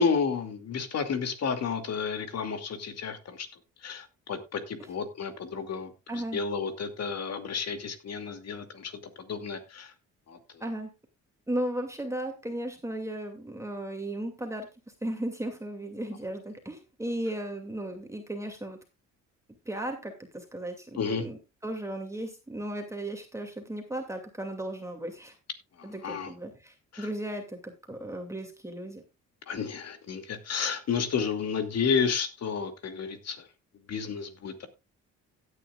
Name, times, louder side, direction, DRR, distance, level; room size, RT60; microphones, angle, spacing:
voice 1, 0.0-3.5 3.8-8.9 9.2-9.9 10.3-10.4 21.0-21.3 25.8-26.3 26.9-27.1 29.5-33.4 33.9-34.7, left 5 dB, 60° left, 7 dB, 2.6 m, -31 dB
voice 2, 6.1-6.4 10.6-10.9 11.5-14.7 15.0-18.8 19.7-21.4 21.6-25.4 25.8-29.0, right 1 dB, 10° right, 3 dB, 2.5 m, -35 dB
17.0 x 9.3 x 2.4 m, 0.26 s
cardioid pair, 90°, 30 cm